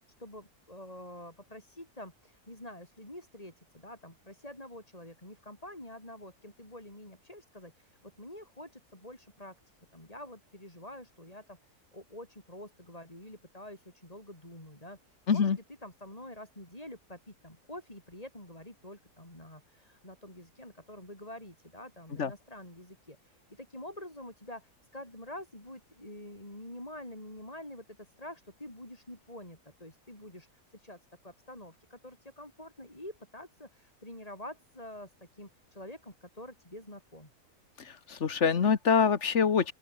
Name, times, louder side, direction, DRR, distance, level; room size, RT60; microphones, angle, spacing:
voice 1, 0.0-9.6 9.9-15.5 15.8-37.3, left 1 dB, 20° left, 6.4 m, -47 dB
voice 2, 38.1-39.7, left 6 dB, 50° left, 1.6 m, -25 dB
open air
omnidirectional pair, 1.7 m